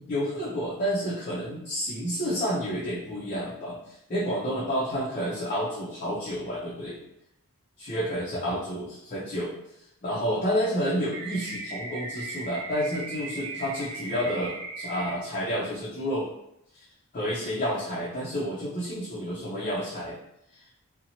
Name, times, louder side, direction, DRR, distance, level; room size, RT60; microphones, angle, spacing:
voice 1, 0.1-3.8 4.1-7.0 7.8-9.5 10.0-16.3 17.1-20.2, equal, 35° left, -8 dB, 0.5 m, -30 dB
sound 1, 11.1-15.1, right 3 dB, 70° right, 0.4 m, -37 dB
2.7 x 2.1 x 2.7 m, 0.78 s
head